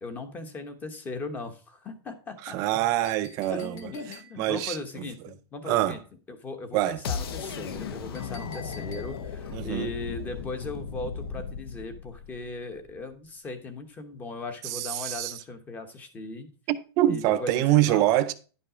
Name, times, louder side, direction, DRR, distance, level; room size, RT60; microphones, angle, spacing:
voice 1, 0.0-2.8 3.5-6.0 6.3-16.5 17.1-18.1, left 3 dB, 10° left, 1.0 m, -38 dB
voice 2, 2.4-3.9 4.4-5.1 5.7-6.0 6.7-7.0 9.5-9.9 14.6-15.4 16.7-18.3, right 14 dB, 25° right, 0.5 m, -25 dB
Chink clink, 3.0-4.6 8.1-9.4, left 3 dB, 30° left, 1.8 m, -49 dB
sound 1, 7.0-13.0, left 6 dB, 65° left, 1.1 m, -36 dB
10.5 x 5.4 x 5.0 m
supercardioid pair, 170°, 13 cm